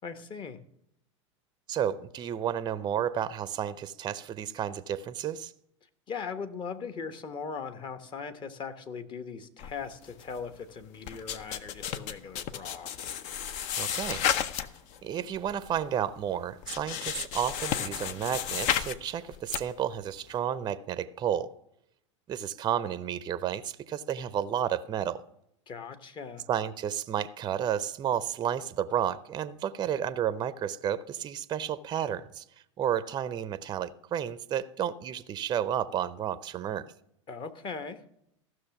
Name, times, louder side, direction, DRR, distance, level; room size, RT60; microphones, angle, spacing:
voice 1, 0.0-0.6 6.1-12.9 25.7-26.4 37.3-38.0, left 5 dB, 30° left, 1.1 m, -39 dB
voice 2, 1.7-5.5 13.8-14.2 15.0-21.5 22.3-25.2 26.5-32.4 32.8-36.9, right 9 dB, 25° right, 0.6 m, -31 dB
sound 1, 9.6-10.6 10.8-15.0 15.3-15.8 16.2-16.3 16.6-19.0 19.3-19.6, left 9 dB, 50° left, 0.8 m, -32 dB
14.5 x 6.3 x 5.9 m
hypercardioid pair, 100°, 16 cm